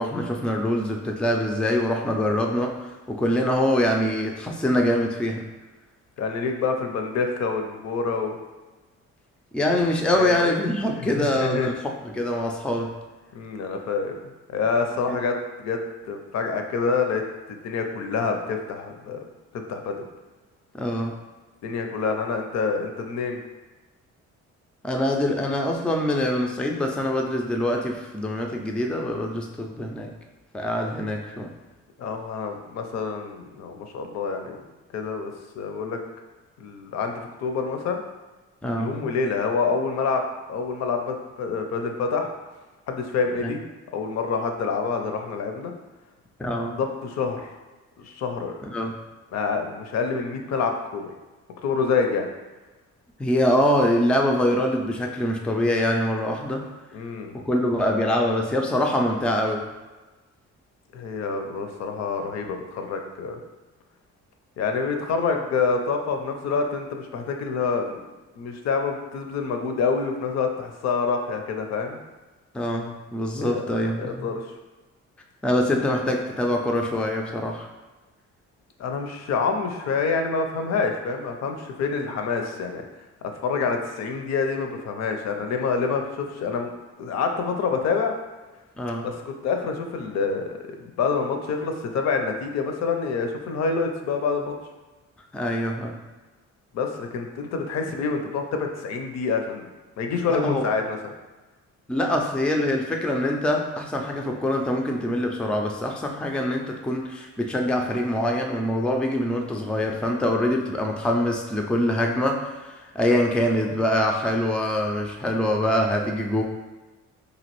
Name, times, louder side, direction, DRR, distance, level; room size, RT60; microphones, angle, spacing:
voice 1, 0.0-5.5 9.5-11.7 12.1-12.9 15.1-15.2 20.8-21.1 24.8-30.1 30.5-31.5 38.6-38.9 43.4-43.5 46.4-46.7 48.6-48.9 53.2-56.6 57.3-59.6 72.5-74.3 75.4-77.7 88.8-89.1 95.3-96.0 100.3-100.6 101.9-116.4, left 1 dB, 5° left, 1 dB, 0.3 m, -24 dB
voice 2, 6.2-8.4 10.1-10.6 11.0-11.7 13.3-14.2 14.5-15.8 16.0-19.2 19.5-20.0 21.6-23.4 32.0-34.6 34.9-36.0 36.6-38.0 38.8-40.2 40.5-42.3 42.9-43.6 43.9-45.7 46.8-47.5 48.0-48.6 49.3-51.1 51.6-52.3 56.9-57.3 60.9-63.4 64.6-68.0 68.4-72.0 73.4-73.6 74.0-74.4 78.8-82.8 83.4-86.7 87.0-88.1 89.0-90.5 90.8-94.5 96.7-99.7 100.0-101.0, left 5 dB, 60° left, 4 dB, 0.5 m, -27 dB
3.0 x 2.5 x 3.0 m, 1.2 s
cardioid pair, 90°, 30 cm